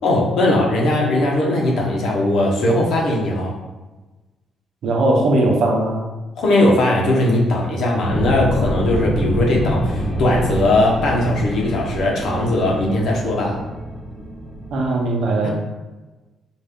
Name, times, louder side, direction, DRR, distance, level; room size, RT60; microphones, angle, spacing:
voice 1, 0.0-3.6 6.4-13.6 15.4-15.5, left 1 dB, 75° left, -1 dB, 1.1 m, -19 dB
voice 2, 4.8-6.0 14.7-15.5, right 2 dB, 75° right, 0 dB, 0.8 m, -18 dB
sound 1, 8.1-14.8, equal, 15° left, 1.1 m, -25 dB
4.2 x 2.7 x 3.6 m, 1.2 s
cardioid pair, 90°, 0 cm